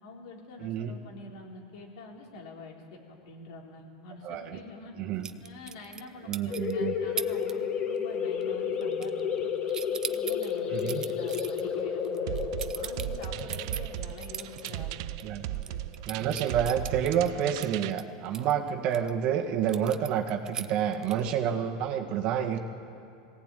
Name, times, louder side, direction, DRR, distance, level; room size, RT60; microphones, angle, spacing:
voice 1, 0.0-4.9 5.4-9.5 9.9-12.4 12.7-15.0 15.5-15.9, left 3 dB, 75° left, 0 dB, 4.1 m, -46 dB
voice 2, 0.6-0.9 4.2-4.6 5.0-5.3 6.2-7.0 10.7-11.0 15.2-15.4 16.1-22.6, right 9 dB, 45° right, 4 dB, 1.8 m, -29 dB
sound 1, 5.2-6.1 6.3-6.7 7.2-7.5 7.8-8.1 8.4-9.4 9.7-14.7 15.1-15.2 15.5-19.1 19.7-21.4, right 7 dB, 20° right, 0.7 m, -39 dB
sound 2, 6.5-15.8, left 7 dB, 35° left, 1.5 m, -32 dB
sound 3, 12.3-17.9, right 14 dB, 65° right, 0.6 m, -37 dB
21.0 x 17.5 x 9.2 m, 2.6 s
supercardioid pair, 135°, 3 cm